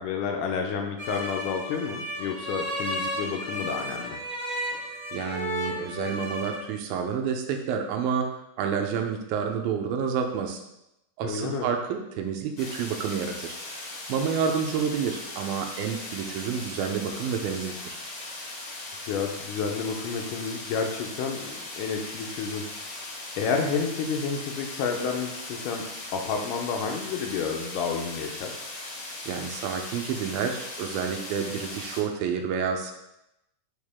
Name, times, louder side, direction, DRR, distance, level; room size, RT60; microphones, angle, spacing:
voice 1, 0.0-4.2 11.2-11.7 19.1-22.6 23.4-25.9 26.1-28.6, left 5 dB, 75° left, 3 dB, 2.1 m, -30 dB
sound 1, 1.0-6.6, equal, 10° left, 1.5 m, -33 dB
voice 2, 5.1-8.3 8.6-10.6 11.2-13.6 14.1-18.0 29.3-32.9, right 7 dB, 90° right, 4 dB, 2.5 m, -29 dB
sound 2, 12.6-32.0, left 2 dB, 35° left, 2.3 m, -39 dB
6.4 x 5.8 x 3.6 m, 0.86 s
omnidirectional pair, 4.3 m